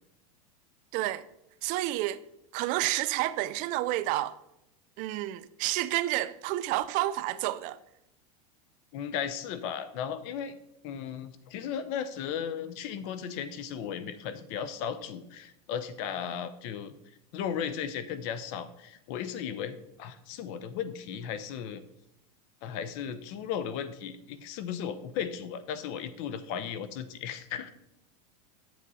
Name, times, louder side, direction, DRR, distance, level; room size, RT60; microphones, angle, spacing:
voice 1, 0.9-1.3 1.6-2.2 2.5-4.4 5.0-7.8, right 16 dB, 40° right, 0.5 m, -30 dB
voice 2, 8.9-10.6 10.8-16.9 17.3-21.8 22.6-27.7, left 8 dB, 50° left, 0.8 m, -36 dB
8.3 x 7.8 x 4.1 m
supercardioid pair, 145°, 20 cm